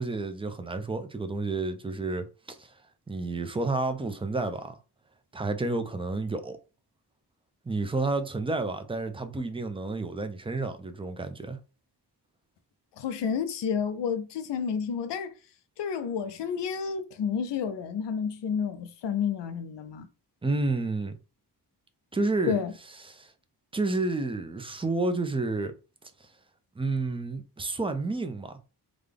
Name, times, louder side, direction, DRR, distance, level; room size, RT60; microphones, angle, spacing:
voice 1, 0.0-2.7 3.1-4.7 5.3-6.6 7.7-11.6 20.4-21.1 22.1-22.6 23.1-23.3 23.7-25.7 26.8-28.5, right 3 dB, 15° right, 0.5 m, -30 dB
voice 2, 13.0-15.3 15.8-20.1 22.5-22.7, left 7 dB, 85° left, 0.6 m, -30 dB
3.8 x 2.2 x 3.3 m
wide cardioid pair, 125°, 41 cm